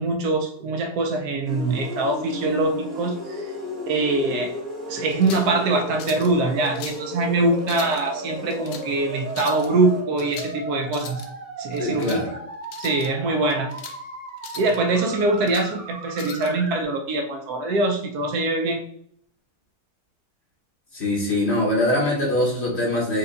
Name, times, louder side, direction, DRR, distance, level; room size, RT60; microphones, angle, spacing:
voice 1, 0.0-3.5 3.9-4.5 4.9-11.2 11.6-12.2 12.8-13.7 14.6-18.8, right 2 dB, 70° right, 4 dB, 1.1 m, -23 dB
sound 1, 1.3-16.8, equal, 30° right, 0.9 m, -35 dB
sound 2, 1.4-10.2, right 1 dB, ahead, 0.9 m, -41 dB
sound 3, 5.1-5.5 6.0-6.3 6.6-7.1 7.6-8.0 8.5-8.9 9.3-9.7 10.2-10.6 10.8-11.3 11.7-12.2 12.6-13.1 13.5-14.0 14.4-14.8 15.2-15.7 16.2-16.5, left 7 dB, 80° left, 1.2 m, -40 dB
voice 2, 11.8-12.3 20.9-23.2, left 1 dB, 45° left, -2 dB, 1.0 m, -23 dB
5.2 x 2.3 x 3.8 m, 0.68 s
omnidirectional pair, 1.8 m